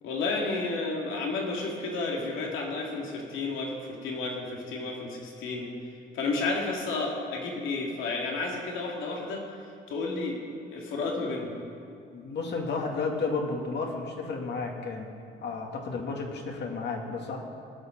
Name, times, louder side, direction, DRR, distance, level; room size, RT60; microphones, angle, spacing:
voice 1, 0.0-5.7 6.1-9.4 9.9-10.4 10.7-11.6, left 3 dB, 90° left, -1 dB, 2.3 m, -31 dB
voice 2, 12.1-15.1 15.4-17.4, left 4 dB, 60° left, 1 dB, 2.0 m, -32 dB
19.5 x 6.7 x 6.0 m, 2.5 s
cardioid pair, 90°, 20 cm